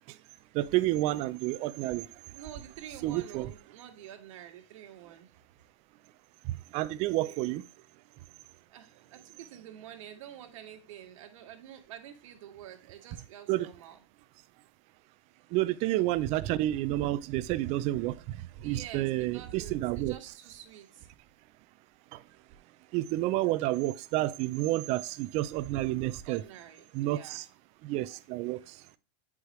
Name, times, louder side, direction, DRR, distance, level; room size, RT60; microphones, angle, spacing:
voice 1, 0.5-2.1 3.0-3.5 6.4-7.6 13.5-13.7 15.5-20.1 22.1-22.2 22.9-26.4 26.9-27.4 27.8-28.8, right 16 dB, 40° right, 0.5 m, -30 dB
voice 2, 1.6-5.3 7.0-7.4 8.7-14.0 16.0-16.1 17.9-18.0 18.6-21.1 22.3-22.4 26.2-27.5 28.2-28.3 28.5-28.7, right 10 dB, 75° right, 1.7 m, -48 dB
8.4 x 4.9 x 3.1 m
supercardioid pair, 140°, 17 cm